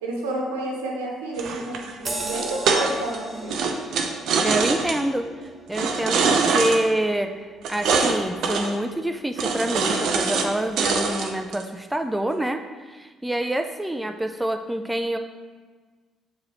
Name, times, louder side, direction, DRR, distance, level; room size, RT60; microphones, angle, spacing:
voice 1, 0.0-3.6, right 2 dB, 75° right, -1 dB, 1.0 m, -30 dB
sound 1, 1.4-3.2 3.5-5.0 5.7-6.8 7.6-8.2 8.4-8.7 9.4-10.5 10.8-11.6, right 4 dB, 60° right, 0.6 m, -23 dB
sound 2, 2.1-7.0 7.4-7.6, right 2 dB, 35° right, 1.2 m, -37 dB
voice 2, 4.4-5.3 5.7-12.6 12.9-15.2, right 1 dB, 10° right, 6 dB, 0.4 m, -26 dB
7.2 x 4.7 x 3.1 m, 1.4 s
figure-of-eight pair, 45°, 0 cm